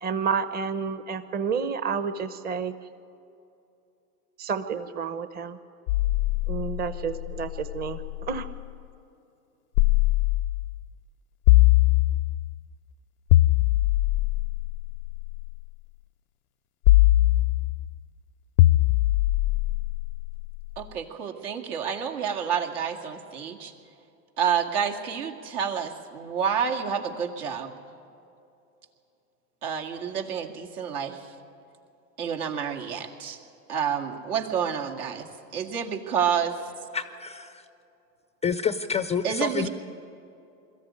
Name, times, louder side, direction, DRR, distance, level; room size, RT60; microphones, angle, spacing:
voice 1, 0.0-2.7 4.4-5.6 6.5-8.0 8.3-8.5, right 6 dB, 20° right, 11 dB, 0.8 m, -30 dB
sound 1, 5.9-8.6 9.8-10.8 11.5-12.6 13.3-15.6 16.9-18.0 18.6-20.7, left 17 dB, 65° left, 0.6 m, -22 dB
voice 2, 20.8-23.7 24.4-27.7 29.6-31.3 32.2-33.4 33.7-35.3 35.5-36.6 39.2-39.7, right 7 dB, 75° right, 2 dB, 2.3 m, -29 dB
voice 3, 36.9-37.6 38.4-39.7, left 6 dB, 15° left, 12 dB, 0.4 m, -28 dB
21.5 x 14.0 x 9.6 m, 2.7 s
hypercardioid pair, 100°, 46 cm